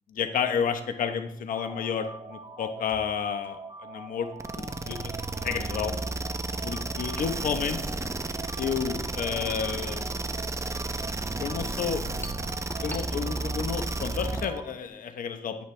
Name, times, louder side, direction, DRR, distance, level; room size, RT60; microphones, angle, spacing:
voice 1, 0.1-4.3 4.6-5.1 5.4-5.9 6.6-7.8 8.6-10.1 11.4-12.0 12.8-15.6, left 7 dB, 80° left, 8 dB, 1.0 m, -31 dB
sound 1, 1.5-14.7, right 3 dB, 40° right, 1.5 m, -44 dB
sound 2, 1.7-1.9 3.4-3.5 4.1-4.2 4.7-14.6, left 1 dB, 15° left, 1.9 m, -47 dB
sound 3, 4.4-14.6, right 3 dB, 20° right, 0.8 m, -32 dB
11.0 x 10.5 x 3.4 m, 0.70 s
cardioid pair, 70°, 14 cm